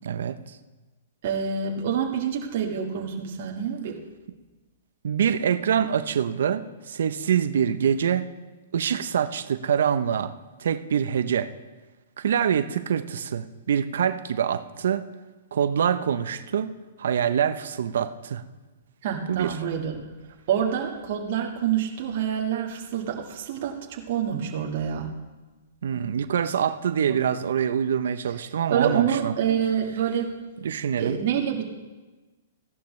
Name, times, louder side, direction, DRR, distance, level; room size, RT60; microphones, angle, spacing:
voice 1, 0.0-0.4 5.0-8.3 8.7-10.3 10.6-11.5 12.2-15.0 15.5-18.4 19.3-19.6 25.8-29.4 30.6-31.2, right 8 dB, 75° right, 12 dB, 0.6 m, -25 dB
voice 2, 1.2-4.0 19.0-20.1 20.5-25.1 28.7-30.3 31.0-31.7, right 8 dB, 50° right, 0 dB, 1.6 m, -27 dB
15.5 x 11.5 x 3.2 m, 1.2 s
hypercardioid pair, 150°, 0 cm